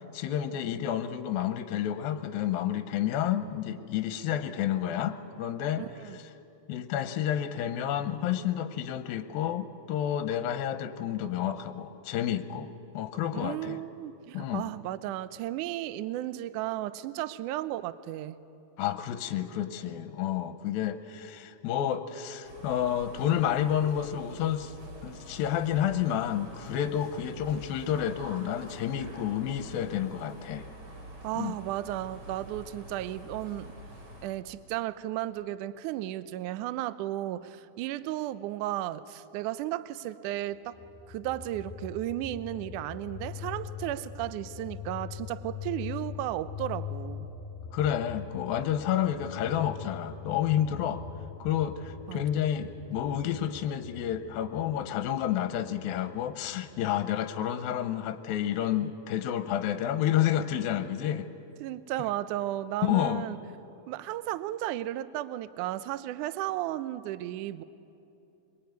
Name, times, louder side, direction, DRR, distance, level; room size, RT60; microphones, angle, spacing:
voice 1, 0.1-6.2 6.7-12.7 12.9-13.8 14.3-14.6 18.8-24.7 25.0-30.7 31.4-31.6 47.7-51.0 51.4-61.3 62.8-63.2, left 10 dB, 75° left, 10 dB, 2.5 m, -30 dB
voice 2, 5.8-6.2 13.3-18.4 31.2-33.7 34.2-40.8 41.1-47.3 52.1-52.5 61.6-63.4 63.9-67.6, right 14 dB, 85° right, 15 dB, 1.8 m, -34 dB
sound 1, 22.4-34.3, right 1 dB, 30° right, 2.9 m, -46 dB
sound 2, 40.7-56.9, left 7 dB, 25° left, 1.9 m, -43 dB
24.0 x 22.5 x 9.4 m, 2.8 s
omnidirectional pair, 4.4 m